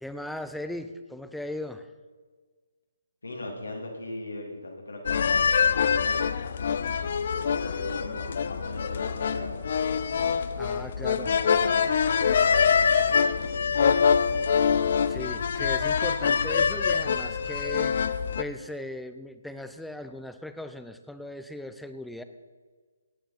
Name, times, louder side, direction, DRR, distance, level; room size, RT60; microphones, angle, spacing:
voice 1, 0.0-1.9 10.6-11.3 15.1-22.2, left 1 dB, ahead, 9 dB, 0.6 m, -38 dB
voice 2, 3.2-6.3 7.1-9.5 11.0-14.1, left 2 dB, 85° left, 0 dB, 2.9 m, -38 dB
sound 1, 5.1-18.4, left 6 dB, 55° left, 0.6 m, -25 dB
17.0 x 9.2 x 4.3 m, 1.5 s
figure-of-eight pair, 145°, 0 cm